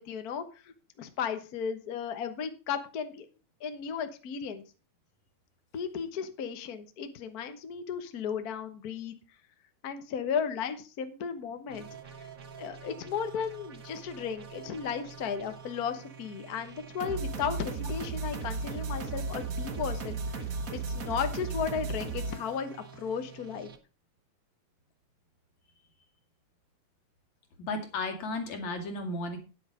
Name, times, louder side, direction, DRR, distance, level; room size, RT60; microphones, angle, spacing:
voice 1, 0.0-3.3 3.6-4.6 5.7-9.1 9.8-11.9 12.6-20.4 20.7-23.7, left 7 dB, 55° left, 9 dB, 1.0 m, -35 dB
sound 1, 11.7-23.8, right 4 dB, 65° right, 0.8 m, -38 dB
voice 2, 27.6-29.4, left 2 dB, 70° left, 4 dB, 3.5 m, -34 dB
9.7 x 8.8 x 5.0 m, 0.32 s
omnidirectional pair, 3.4 m